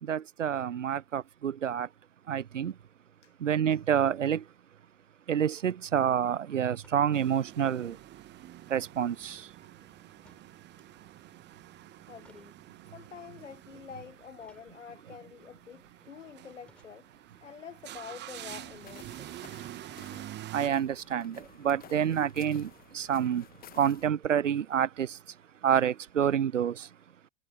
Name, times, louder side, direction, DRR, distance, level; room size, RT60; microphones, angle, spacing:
voice 1, 0.0-1.9 2.3-2.8 3.4-4.5 5.3-8.0 8.7-9.7 19.6-19.9 20.5-27.0, right 9 dB, 85° right, 0.6 m, -28 dB
sound 1, 5.0-5.3 6.7-7.1 7.6-7.7 7.9-9.0 10.2-11.1 11.4-11.6 12.0-12.6 13.1-13.4 14.3-14.7 15.5-15.9 16.5-16.9 17.7-19.4, left 1 dB, 5° left, 7.5 m, -65 dB
sound 2, 7.1-20.7, right 14 dB, 30° right, 1.2 m, -48 dB
voice 2, 12.1-12.6 12.9-19.5, left 7 dB, 80° left, 1.4 m, -47 dB
sound 3, 18.5-24.1, left 11 dB, 25° left, 1.2 m, -54 dB
figure-of-eight pair, 90°, 36 cm